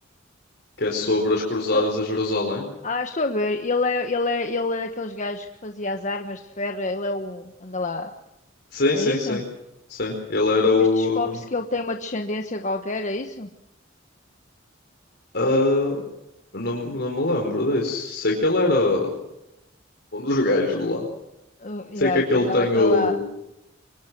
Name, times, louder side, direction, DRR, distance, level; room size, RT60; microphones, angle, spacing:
voice 1, 0.8-2.7 8.7-9.4 9.9-11.4 15.3-16.0 16.5-19.1 20.1-21.1 21.9-23.2, left 2 dB, 60° left, 0 dB, 4.6 m, -22 dB
voice 2, 2.8-8.1 8.9-9.4 10.7-13.5 21.6-23.2, left 2 dB, 40° left, 5 dB, 1.4 m, -28 dB
25.5 x 24.0 x 6.2 m, 0.88 s
head